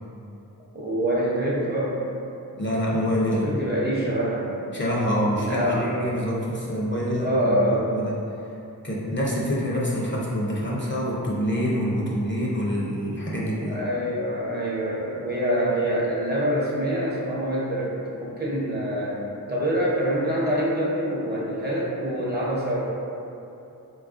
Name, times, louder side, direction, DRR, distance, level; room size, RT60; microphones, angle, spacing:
voice 1, 0.7-2.0 3.3-4.5 5.2-5.9 7.2-8.0 13.7-19.2 19.5-22.9, equal, 25° right, -6 dB, 0.8 m, -25 dB
voice 2, 2.6-3.5 4.7-8.2 8.8-13.8, equal, 30° left, -6 dB, 0.5 m, -26 dB
4.1 x 2.3 x 2.5 m, 2.9 s
wide cardioid pair, 45°, 36 cm